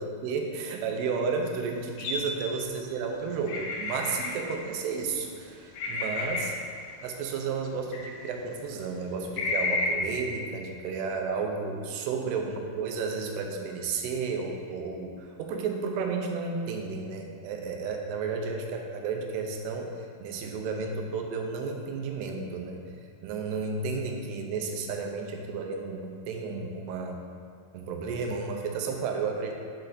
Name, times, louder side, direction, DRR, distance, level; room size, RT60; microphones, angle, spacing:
voice 1, 0.0-6.5 7.0-22.8 23.2-27.2 27.7-29.5, right 4 dB, 90° right, 2 dB, 2.7 m, -32 dB
sound 1, 2.0-2.4 3.5-4.6 5.7-6.7 7.9-8.2 9.4-9.9, left 3 dB, 80° left, 1.8 m, -31 dB
8.7 x 4.4 x 4.0 m, 2.3 s
omnidirectional pair, 4.7 m